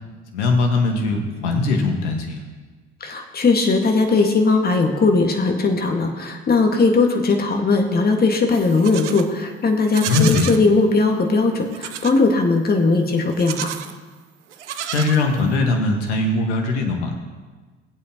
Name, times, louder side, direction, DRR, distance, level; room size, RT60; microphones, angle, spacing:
voice 1, 0.3-2.4 10.1-10.5 14.9-17.1, left 3 dB, 70° left, 3 dB, 1.7 m, -20 dB
voice 2, 3.0-13.7, left 3 dB, 25° left, 3 dB, 1.8 m, -19 dB
Livestock farm animals working animals, 8.5-9.3 9.8-10.6 11.7-12.2 13.3-14.0 14.5-15.6, right 9 dB, 80° right, 0.6 m, -31 dB
18.0 x 8.4 x 3.0 m, 1.4 s
figure-of-eight pair, 55°, 35 cm